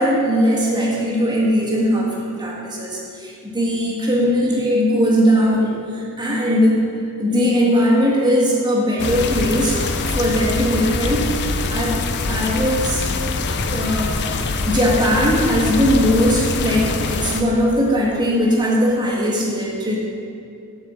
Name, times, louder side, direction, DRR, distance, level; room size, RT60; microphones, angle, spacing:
voice 1, 0.0-6.8 7.2-9.8 10.1-11.3 11.7-12.0 12.3-13.0 13.7-20.0, equal, 20° right, -3 dB, 1.5 m, -19 dB
sound 1, 9.0-17.4, left 3 dB, 50° left, 0.5 m, -24 dB
7.5 x 4.8 x 7.0 m, 2.7 s
head